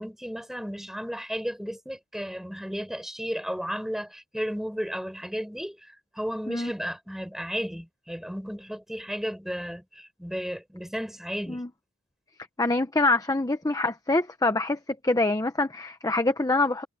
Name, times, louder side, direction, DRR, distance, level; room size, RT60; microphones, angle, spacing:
voice 1, 0.0-11.6, equal, ahead, 5.1 m, -34 dB
voice 2, 12.6-16.8, left 2 dB, 15° left, 0.8 m, -25 dB
head